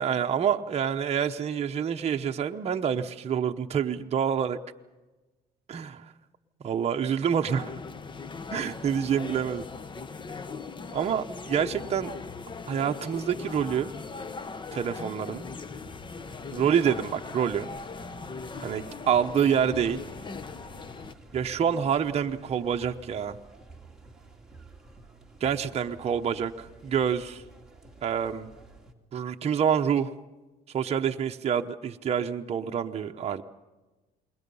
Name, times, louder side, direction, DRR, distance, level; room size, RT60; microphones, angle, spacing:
voice 1, 0.0-4.6 5.7-6.1 6.6-7.7 8.5-9.6 10.9-12.1 12.7-13.9 14.7-15.5 16.5-17.7 18.6-20.0 21.3-23.4 25.4-27.4 28.0-28.5 29.1-30.1 30.7-33.4, right 8 dB, 40° right, 4 dB, 0.9 m, -27 dB
sound 1, 7.5-21.1, left 4 dB, 30° left, 0.9 m, -39 dB
sound 2, 15.7-28.9, right 3 dB, 5° right, 2.6 m, -51 dB
28.5 x 21.5 x 5.5 m, 1.2 s
cardioid pair, 110°, 17 cm